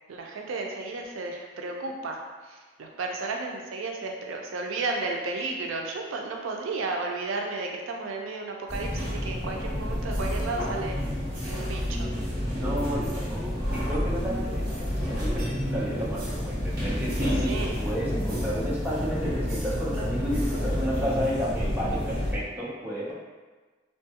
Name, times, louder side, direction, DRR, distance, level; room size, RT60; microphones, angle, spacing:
voice 1, 0.1-2.2 2.8-11.0 11.5-12.1 17.2-17.7, right 3 dB, 85° right, 1 dB, 0.4 m, -33 dB
sound 1, 8.7-22.3, equal, 50° right, 0.8 m, -29 dB
voice 2, 12.5-23.1, equal, 10° right, -7 dB, 0.5 m, -31 dB
3.1 x 2.2 x 2.7 m, 1.3 s
head